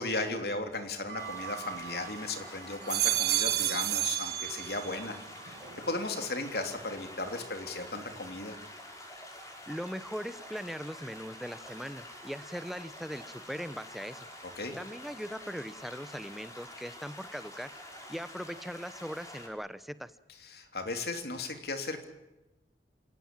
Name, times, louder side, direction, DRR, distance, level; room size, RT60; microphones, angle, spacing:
voice 1, 0.0-5.2 5.9-8.6 14.6-14.7 20.4-22.0, left 2 dB, 60° left, 6 dB, 3.4 m, -36 dB
sound 1, 1.1-2.2 2.7-5.1 5.5-6.1, right 13 dB, 60° right, 1.3 m, -32 dB
sound 2, 1.2-19.5, left 1 dB, 15° left, 5.5 m, -47 dB
voice 2, 9.7-14.3 14.8-17.7 18.1-20.1, equal, ahead, 14 dB, 0.9 m, -40 dB
28.5 x 17.0 x 9.1 m, 1.0 s
head